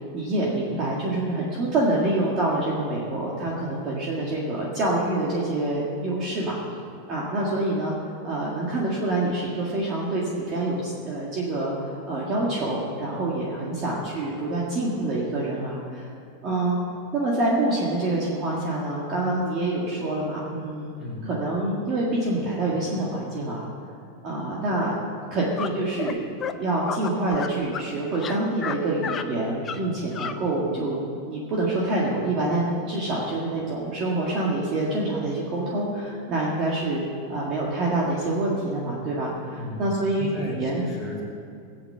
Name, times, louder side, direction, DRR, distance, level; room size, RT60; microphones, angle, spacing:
voice 1, 0.1-6.6 7.1-7.9 8.2-16.1 16.4-16.7 17.1-20.9 21.2-23.6 24.2-24.9 25.3-26.3 26.6-31.0 31.3-37.0 37.3-40.8, right 2 dB, 25° right, -5 dB, 1.9 m, -26 dB
voice 2, 21.0-21.3 39.5-39.9 40.2-41.2, left 1 dB, 5° right, -6 dB, 3.5 m, -35 dB
sound 1, 25.6-25.7 26.0-26.1 26.4-26.5 26.8-27.9 28.1-28.8 29.0-29.3 29.6-29.8 30.1-30.4, left 7 dB, 15° left, 0.6 m, -31 dB
19.0 x 8.4 x 7.7 m, 2.4 s
supercardioid pair, 175°, 0 cm